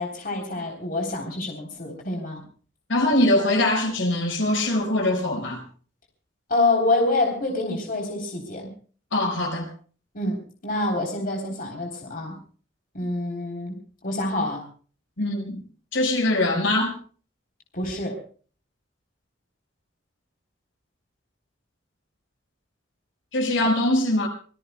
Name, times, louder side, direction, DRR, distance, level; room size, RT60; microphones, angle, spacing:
voice 1, 0.0-2.4 6.5-8.7 10.1-12.3 12.9-13.7 14.0-14.6 17.7-18.2, left 2 dB, 45° left, 1 dB, 3.6 m, -26 dB
voice 2, 2.9-5.6 9.1-9.7 15.2-15.6 15.9-16.9 23.3-24.3, left 1 dB, 75° left, 2 dB, 5.2 m, -22 dB
26.5 x 19.5 x 2.3 m, 0.41 s
head